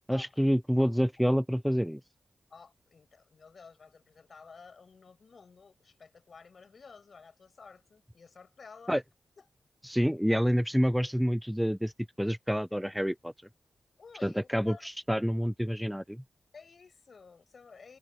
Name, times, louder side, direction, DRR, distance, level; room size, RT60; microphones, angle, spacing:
voice 1, 0.1-2.0 8.9-9.0 9.8-11.9 12.2-13.3 14.2-16.2, equal, ahead, 0.4 m, -28 dB
voice 2, 2.5-9.0 9.4-9.5 14.0-14.9 16.5-18.0, left 5 dB, 60° left, 7.8 m, -53 dB
cardioid pair, 75°, 0 cm